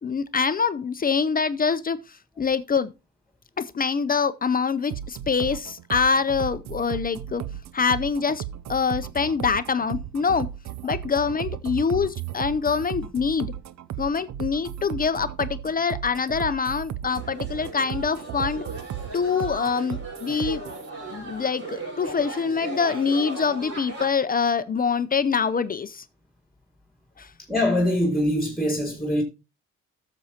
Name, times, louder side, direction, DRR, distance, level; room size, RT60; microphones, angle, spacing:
voice 1, 0.0-2.0 2.4-2.9 3.6-7.4 7.7-8.4 8.7-10.5 10.8-13.5 14.0-18.6 19.1-20.6 21.1-26.0 27.2-27.3, left 5 dB, 30° left, 0.5 m, -25 dB
sound 1, 4.9-20.9, right 11 dB, 65° right, 0.6 m, -35 dB
sound 2, 17.0-24.1, right 2 dB, 50° right, 4.5 m, -36 dB
voice 2, 27.5-29.2, left 1 dB, ahead, 2.1 m, -23 dB
13.5 x 6.9 x 2.8 m
cardioid pair, 90°, 30 cm